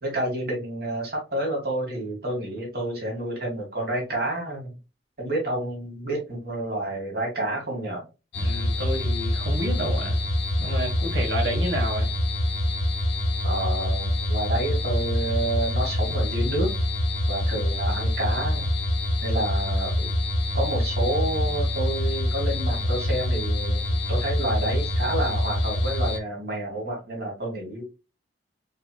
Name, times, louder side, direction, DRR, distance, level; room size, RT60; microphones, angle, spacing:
voice 1, 0.0-4.8 5.2-8.1 13.4-16.7 17.3-18.7 19.2-20.1 20.5-23.8 24.1-27.8, right 1 dB, 55° right, 2.0 m, -29 dB
sound 1, 8.3-26.2, left 1 dB, 70° left, 0.6 m, -25 dB
voice 2, 8.4-10.3 10.6-12.1, right 1 dB, 80° right, 1.7 m, -30 dB
4.5 x 3.0 x 2.3 m
head